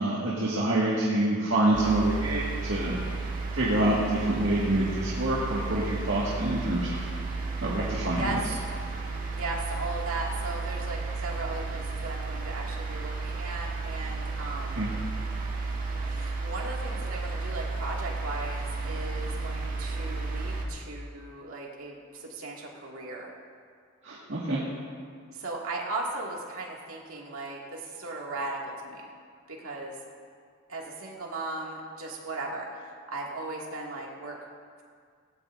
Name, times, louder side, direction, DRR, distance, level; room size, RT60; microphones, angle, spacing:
voice 1, 0.0-3.0 3.5-7.1 7.6-8.2 14.8-14.9 24.0-24.6, right 1 dB, 60° right, -6 dB, 2.0 m, -26 dB
sound 1, 1.7-20.6, right 3 dB, 40° right, 1.6 m, -33 dB
voice 2, 9.4-14.8 16.0-23.3 25.3-29.1 29.5-29.9 30.7-32.7 33.1-34.4, right 2 dB, 85° right, -2 dB, 2.3 m, -37 dB
17.0 x 17.0 x 2.7 m, 2.1 s
head